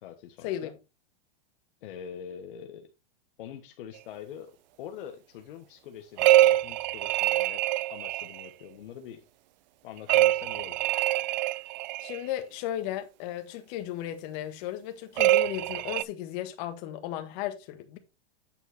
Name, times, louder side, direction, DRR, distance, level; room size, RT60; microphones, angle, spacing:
voice 1, 0.0-0.7 1.8-2.9 3.4-4.5 4.8-7.6 7.9-9.2 9.8-10.8, left 9 dB, 60° left, 1.4 m, -44 dB
sound 1, 6.2-8.5 10.1-12.2 15.2-16.0, right 16 dB, 50° right, 0.4 m, -24 dB
voice 2, 12.0-18.0, left 12 dB, 45° left, 1.7 m, -35 dB
9.2 x 4.5 x 4.3 m
supercardioid pair, 145°, 30 cm